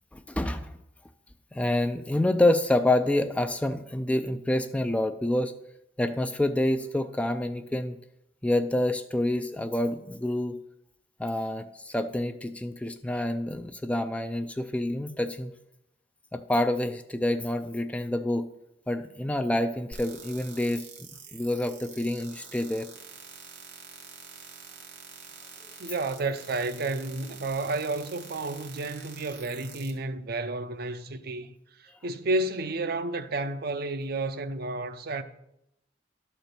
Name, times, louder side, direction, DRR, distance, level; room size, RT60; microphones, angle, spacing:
voice 1, 0.1-0.8 1.5-5.5 6.0-8.0 8.4-10.6 11.2-15.5 16.3-18.5 18.9-22.9, left 1 dB, 5° left, 0.3 m, -27 dB
sound 1, 19.9-29.9, right 6 dB, 85° right, 1.8 m, -47 dB
voice 2, 25.8-31.5 31.8-35.2, right 2 dB, 55° right, 0.6 m, -31 dB
11.5 x 4.4 x 6.7 m
head